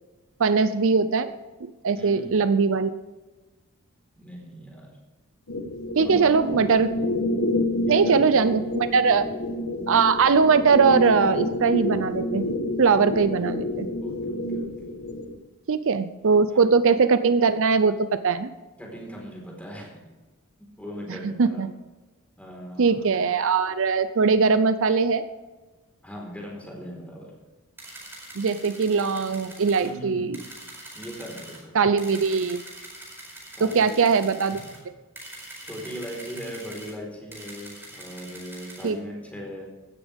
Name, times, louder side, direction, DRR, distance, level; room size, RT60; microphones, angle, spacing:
voice 1, 0.4-1.3 1.6-2.9 6.0-6.9 7.9-9.3 9.9-12.5 12.8-13.9 15.7-18.5 21.1-21.7 22.8-25.3 28.4-30.4 31.7-32.6 33.6-34.6 38.8-39.0, right 5 dB, 60° right, 12 dB, 0.6 m, -21 dB
voice 2, 2.0-2.4 4.2-4.9 6.0-6.6 7.9-8.3 9.1-9.4 13.3-13.5 14.0-15.0 16.5-16.7 18.8-20.0 20.8-21.7 22.4-23.1 26.0-27.3 29.8-30.3 30.9-31.8 33.5-34.0 34.5-34.6 35.6-39.7, equal, 5° left, -1 dB, 4.3 m, -39 dB
sound 1, 5.5-15.4, left 1 dB, 70° left, 1.4 m, -29 dB
sound 2, 27.8-29.9 30.3-31.6 32.0-34.8 35.1-36.9 37.3-38.9, right 1 dB, 10° right, 4.7 m, -43 dB
16.0 x 13.5 x 3.6 m, 1.2 s
head